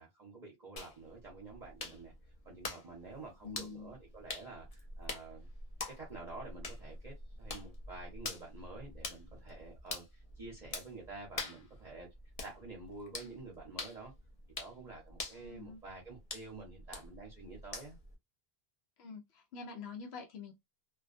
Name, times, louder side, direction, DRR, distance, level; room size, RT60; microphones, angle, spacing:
voice 1, 0.0-2.1 2.4-5.5 5.9-12.1 12.4-14.1 14.6-18.0, right 3 dB, 45° right, 0.8 m, -49 dB
sound 1, 0.8-18.2, left 3 dB, 45° left, 0.6 m, -46 dB
voice 2, 3.4-4.0 15.3-15.8 19.0-20.5, left 5 dB, 85° left, 0.9 m, -46 dB
2.4 x 2.2 x 2.4 m
omnidirectional pair, 1.1 m